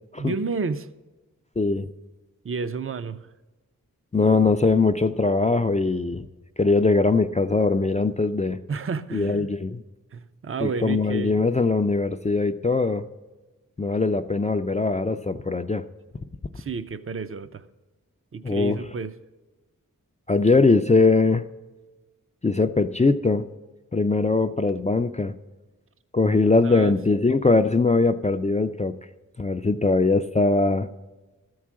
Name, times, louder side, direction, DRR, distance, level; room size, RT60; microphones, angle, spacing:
voice 1, 0.2-0.9 2.4-3.3 8.7-9.5 10.1-11.4 16.6-17.6 18.3-19.1 26.6-26.9, right 5 dB, 40° right, 12 dB, 0.5 m, -30 dB
voice 2, 1.6-1.9 4.1-6.3 6.6-8.6 9.1-9.8 10.6-13.1 13.8-15.8 18.4-18.8 20.3-21.4 22.4-23.5 23.9-25.3 26.1-28.9 29.4-30.9, left 3 dB, 20° left, 7 dB, 0.4 m, -21 dB
13.0 x 4.7 x 7.4 m, 1.2 s
wide cardioid pair, 55°, 33 cm